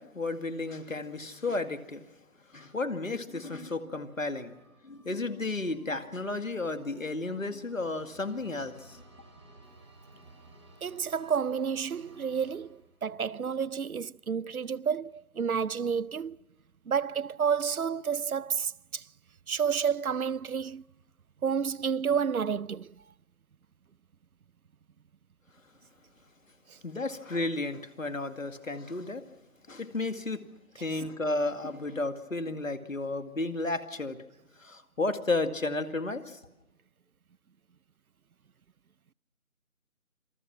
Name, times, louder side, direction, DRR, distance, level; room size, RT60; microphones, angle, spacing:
voice 1, 0.0-2.0 2.5-4.6 4.8-9.0 26.8-29.2 29.7-30.4 30.8-34.2 34.6-36.4, left 2 dB, 65° left, 2.3 m, -33 dB
sound 1, 3.6-13.1, right 2 dB, 20° right, 4.9 m, -57 dB
voice 2, 10.8-16.4 16.9-19.1 19.5-20.8 21.4-23.0 30.9-31.0, right 7 dB, 80° right, 0.7 m, -30 dB
27.0 x 20.0 x 6.2 m
figure-of-eight pair, 175°, 42 cm